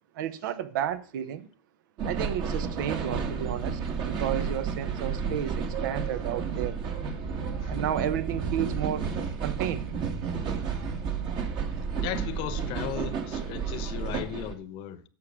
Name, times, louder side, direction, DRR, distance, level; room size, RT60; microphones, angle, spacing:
voice 1, 0.1-1.5 2.0-6.8 7.7-9.1 9.4-9.9, right 10 dB, 75° right, 1.0 m, -32 dB
sound 1, 2.0-14.5, right 6 dB, 50° right, 1.9 m, -31 dB
voice 2, 12.0-15.0, left 12 dB, 55° left, 1.0 m, -36 dB
9.6 x 6.3 x 6.5 m
hypercardioid pair, 105°, 11 cm